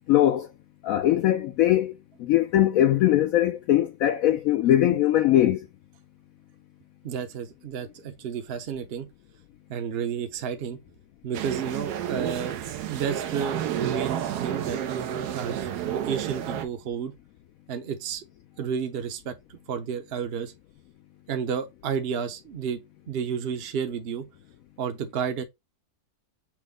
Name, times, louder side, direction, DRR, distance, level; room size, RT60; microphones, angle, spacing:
voice 1, 0.1-0.5 0.8-1.9 2.2-5.6, left 12 dB, 70° left, 0.9 m, -21 dB
voice 2, 7.0-9.1 9.7-10.8 11.2-12.6 12.9-14.8 15.1-17.1 17.7-18.2 18.6-20.5 21.3-22.8 23.1-24.2 24.8-25.4, right 7 dB, 50° right, 0.8 m, -31 dB
sound 1, 11.3-16.7, right 9 dB, 90° right, 1.2 m, -30 dB
6.1 x 2.1 x 3.5 m
omnidirectional pair, 1.6 m